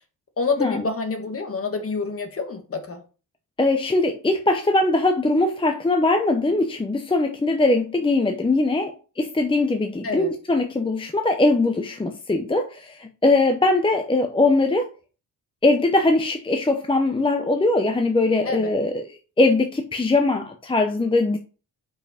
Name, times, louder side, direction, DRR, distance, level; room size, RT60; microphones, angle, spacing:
voice 1, 0.4-3.0 10.0-10.3 18.4-18.7, left 4 dB, 35° left, 1.5 m, -27 dB
voice 2, 3.6-14.9 15.6-19.0 19.4-21.4, left 2 dB, 15° left, 0.7 m, -21 dB
5.6 x 5.2 x 5.0 m
cardioid pair, 125°, 39 cm